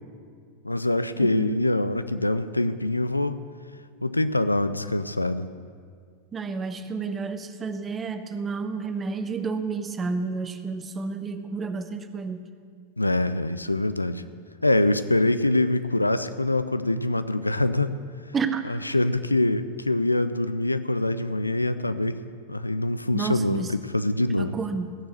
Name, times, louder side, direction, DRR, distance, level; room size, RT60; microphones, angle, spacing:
voice 1, 0.6-3.4 4.0-5.5 13.0-14.2 14.6-18.0 18.7-22.2 22.5-24.5, left 2 dB, 85° left, 13 dB, 0.4 m, -24 dB
voice 2, 1.2-1.6 6.3-12.5 18.3-18.6 23.1-23.8 24.4-25.1, right 4 dB, 20° right, 9 dB, 0.7 m, -30 dB
15.5 x 6.8 x 6.9 m, 2.1 s
figure-of-eight pair, 90°, 0 cm